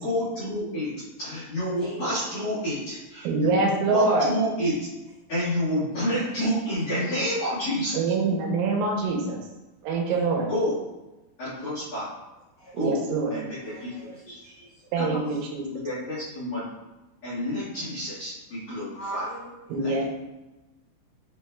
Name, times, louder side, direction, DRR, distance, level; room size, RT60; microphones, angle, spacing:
voice 1, 0.0-4.9 5.3-8.0 10.5-10.7 11.4-12.1 12.8-13.0 13.3-14.4 15.0-15.3 15.7-16.7 17.2-19.2 19.8-20.1, equal, 55° left, -12 dB, 2.0 m, -29 dB
voice 2, 1.8-2.1 10.1-10.2 12.6-12.7 13.6-14.8 18.9-19.8, right 1 dB, 90° left, -9 dB, 1.9 m, -40 dB
voice 3, 3.2-4.3 8.0-9.4 9.8-10.5 12.7-13.3 14.9-15.7 19.7-20.1, right 3 dB, 85° right, 0 dB, 3.1 m, -24 dB
7.2 x 3.0 x 2.3 m, 1.0 s
omnidirectional pair, 5.6 m